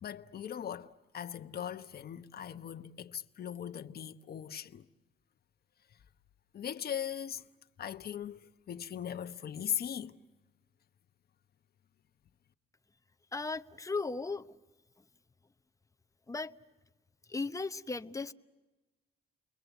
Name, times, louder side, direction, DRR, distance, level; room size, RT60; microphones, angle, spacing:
voice 1, 0.0-4.8 6.5-7.4 7.8-8.4 8.7-10.2, left 9 dB, 50° left, 1.1 m, -39 dB
voice 2, 13.3-14.6 16.3-16.5 17.3-18.3, left 3 dB, 15° left, 0.9 m, -36 dB
30.0 x 22.5 x 8.1 m
cardioid pair, 90°, 20 cm